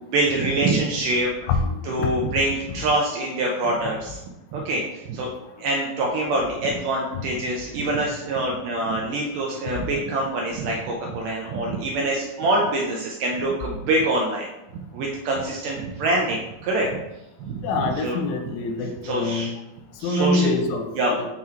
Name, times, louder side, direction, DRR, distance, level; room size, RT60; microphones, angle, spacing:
voice 1, 0.1-1.3 1.8-4.2 4.5-5.3 5.6-14.5 14.9-16.9 17.4-18.2 18.8-19.5 20.0-20.5 21.0-21.1, right 2 dB, 80° right, -1 dB, 1.9 m, -25 dB
voice 2, 17.6-19.5 20.0-21.3, left 3 dB, 85° left, 5 dB, 2.4 m, -25 dB
5.9 x 3.7 x 4.3 m, 0.94 s
omnidirectional pair, 4.4 m